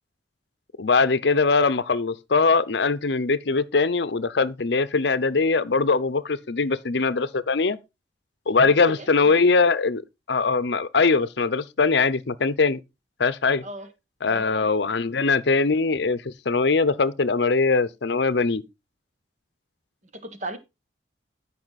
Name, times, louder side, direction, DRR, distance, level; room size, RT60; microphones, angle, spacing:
voice 1, 0.8-7.8 8.5-10.0 10.3-12.8 13.2-13.6 14.2-18.6, left 4 dB, 65° left, 0.7 m, -21 dB
voice 2, 8.6-9.1 13.6-13.9 14.2-14.5 20.1-20.6, right 1 dB, 40° right, 1.4 m, -35 dB
13.5 x 5.6 x 4.1 m
head